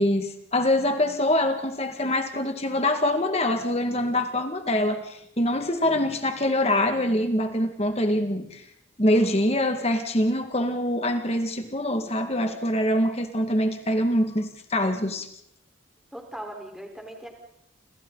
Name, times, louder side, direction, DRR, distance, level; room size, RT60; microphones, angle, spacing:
voice 1, 0.0-8.6 9.0-15.3, left 1 dB, 30° left, 6 dB, 2.0 m, -24 dB
voice 2, 16.1-17.3, right 1 dB, 5° right, 1 dB, 4.3 m, -39 dB
30.0 x 27.5 x 4.0 m, 0.77 s
head